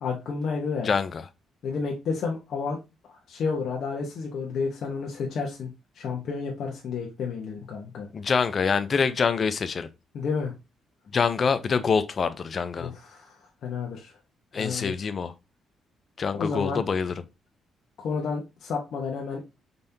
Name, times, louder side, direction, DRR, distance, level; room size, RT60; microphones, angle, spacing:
voice 1, 0.0-0.9 1.6-2.8 3.3-8.1 10.1-10.5 12.8-13.4 13.6-14.1 14.6-15.0 16.4-16.8 18.0-19.4, left 5 dB, 65° left, 1.1 m, -31 dB
voice 2, 0.8-1.2 8.1-9.9 11.1-12.9 14.5-15.3 16.2-17.1, left 5 dB, 45° left, 0.6 m, -25 dB
5.3 x 3.4 x 2.8 m
cardioid pair, 90°, 0 cm